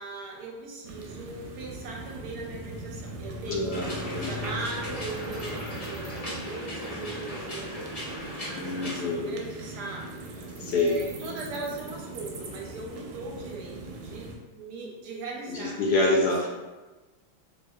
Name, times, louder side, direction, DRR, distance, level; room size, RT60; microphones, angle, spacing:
voice 1, 0.0-3.8 4.1-16.5, right 3 dB, 70° right, -1 dB, 1.1 m, -39 dB
sound 1, 0.8-14.4, right 2 dB, 90° right, 1.3 m, -41 dB
voice 2, 3.5-4.3 8.6-9.3 10.6-11.0 15.5-16.5, left 2 dB, 70° left, -3 dB, 1.0 m, -26 dB
sound 2, 3.7-9.0, equal, 35° left, 0.6 m, -37 dB
4.1 x 2.7 x 2.3 m, 1.2 s
omnidirectional pair, 2.0 m